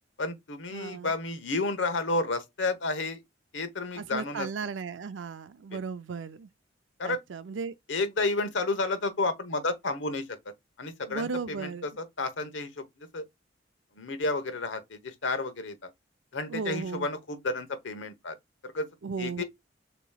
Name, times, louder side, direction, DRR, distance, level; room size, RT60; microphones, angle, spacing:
voice 1, 0.2-3.2 3.5-4.5 7.0-7.2 7.9-10.4 10.8-11.7 12.2-13.2 14.0-15.9 16.3-18.3 18.6-18.9 19.2-19.4, left 3 dB, 85° left, 1.1 m, -31 dB
voice 2, 0.7-1.1 3.9-6.5 7.0-7.7 11.1-11.8 16.5-17.1 19.0-19.4, right 5 dB, 85° right, 0.5 m, -35 dB
6.9 x 3.0 x 2.3 m
head